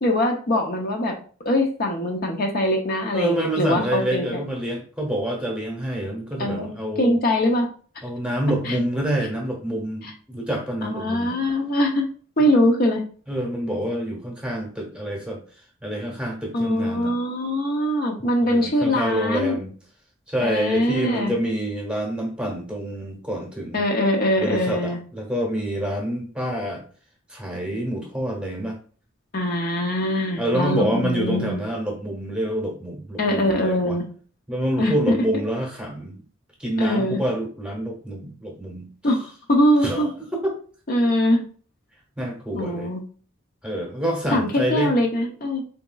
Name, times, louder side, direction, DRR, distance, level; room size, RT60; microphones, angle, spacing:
voice 1, 0.0-1.1 1.4-4.3 6.4-6.7 7.0-7.7 8.6-8.8 10.0-10.1 10.8-12.0 12.4-13.0 16.5-19.6 20.4-21.3 23.7-25.0 29.3-31.6 33.2-34.1 34.8-35.2 36.8-37.2 39.0-40.1 40.9-41.4 42.5-43.0 44.3-45.6, left 1 dB, 50° left, 1 dB, 0.7 m, -22 dB
voice 2, 3.1-7.2 8.0-11.4 13.3-15.4 15.8-17.1 18.4-19.7 20.3-23.8 24.4-26.8 27.3-28.8 30.4-34.0 34.5-36.2 36.6-38.9 39.8-40.5 42.2-42.9 43.6-44.9, right 1 dB, 5° right, 0 dB, 1.0 m, -27 dB
4.0 x 3.5 x 2.3 m, 0.40 s
head